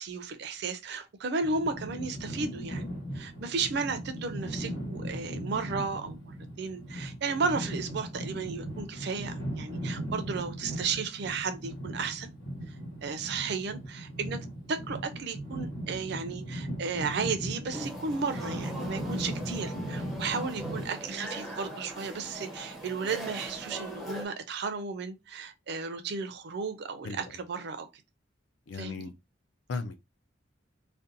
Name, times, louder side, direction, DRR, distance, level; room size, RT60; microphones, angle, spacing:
voice 1, 0.0-2.9 3.1-12.3 13.0-14.4 14.7-27.9 28.7-29.1, right 4 dB, 55° right, 0.4 m, -34 dB
sound 1, 1.4-20.9, right 1 dB, 80° left, 1.2 m, -38 dB
sound 2, 17.7-24.3, right 1 dB, ahead, 0.5 m, -40 dB
voice 2, 27.0-27.4 28.7-29.1 29.7-30.0, left 4 dB, 65° left, 0.4 m, -37 dB
2.5 x 2.2 x 2.6 m
head